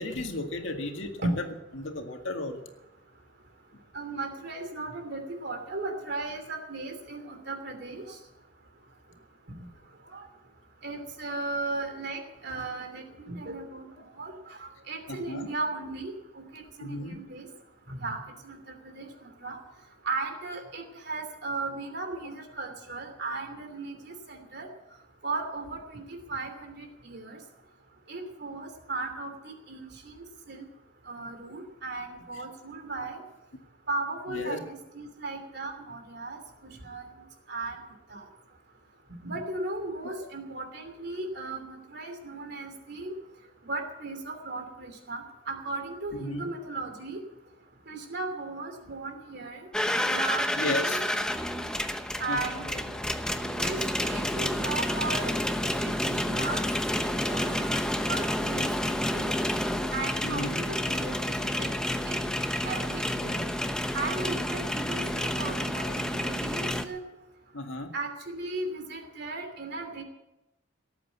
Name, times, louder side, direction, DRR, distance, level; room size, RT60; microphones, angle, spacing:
voice 1, 0.0-2.6 15.1-15.5 16.8-17.2 34.3-34.6 40.2-40.3 46.1-46.5 50.6-51.0 52.3-52.6 60.2-60.6 67.5-67.9, left 2 dB, 75° left, 4 dB, 1.9 m, -34 dB
voice 2, 3.9-8.2 10.1-10.2 10.8-13.9 14.2-17.5 17.9-19.6 20.0-24.7 25.2-27.4 28.1-29.3 29.7-30.1 30.5-30.6 31.1-33.2 33.9-37.1 37.5-37.8 38.1-38.2 39.2-43.1 43.6-47.2 47.9-49.6 50.0-51.2 52.2-52.9 53.6-55.3 55.8-56.6 57.2-57.8 58.1-59.3 59.9-61.7 62.1-62.2 62.6-63.4 63.9-67.0 67.9-70.0, right 3 dB, 55° right, 5 dB, 3.0 m, -36 dB
sound 1, 49.7-66.8, left 1 dB, 5° left, 0.8 m, -29 dB
18.0 x 8.4 x 8.3 m, 0.95 s
head